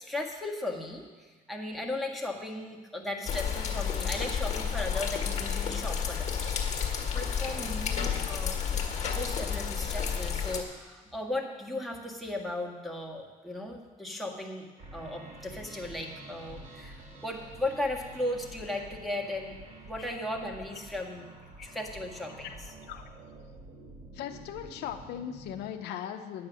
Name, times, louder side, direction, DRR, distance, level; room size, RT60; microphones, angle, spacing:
voice 1, 0.0-6.3 7.1-21.3 21.6-22.6, left 1 dB, ahead, -2 dB, 1.6 m, -36 dB
sound 1, 3.2-10.6, left 7 dB, 45° left, 1.7 m, -31 dB
sound 2, 14.8-25.6, right 2 dB, 45° right, 3.1 m, -48 dB
voice 2, 24.1-26.5, left 10 dB, 85° left, 6 dB, 0.8 m, -38 dB
9.5 x 8.6 x 6.3 m, 1.4 s
cardioid pair, 110°, 17 cm